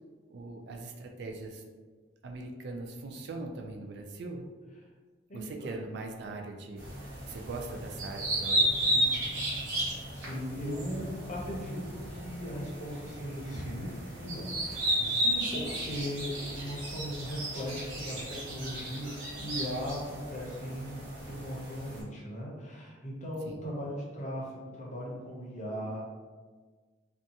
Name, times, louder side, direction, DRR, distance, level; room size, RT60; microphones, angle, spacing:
voice 1, 0.3-1.6 2.2-4.5 5.3-6.8 7.3-9.1 15.0-15.2 23.5-23.6, right 2 dB, 60° right, 2 dB, 0.3 m, -41 dB
voice 2, 5.3-5.7 10.1-13.9 14.2-26.0, equal, 40° left, -3 dB, 0.6 m, -38 dB
sound 1, 6.8-22.0, right 1 dB, 90° right, 0.9 m, -34 dB
2.6 x 2.3 x 2.7 m, 1.4 s
head